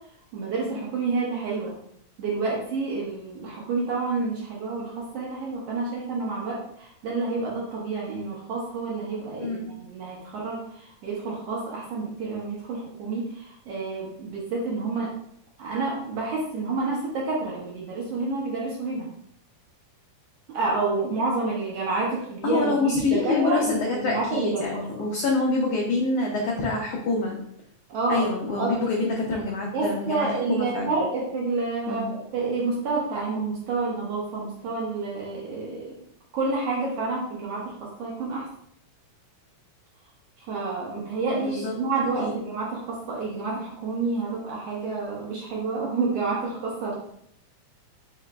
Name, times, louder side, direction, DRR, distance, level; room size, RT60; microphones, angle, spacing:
voice 1, 0.3-1.7 2.2-15.1 15.6-19.1 20.5-24.8 27.9-28.9 29.7-35.9 36.3-38.5 40.5-47.0, right 3 dB, 70° right, -4 dB, 1.6 m, -29 dB
voice 2, 9.4-9.7 22.4-27.4 28.1-31.0 31.9-32.1 41.3-41.7 42.2-42.3, left 3 dB, 85° left, -1 dB, 1.4 m, -26 dB
4.8 x 3.8 x 2.2 m, 0.70 s
omnidirectional pair, 3.5 m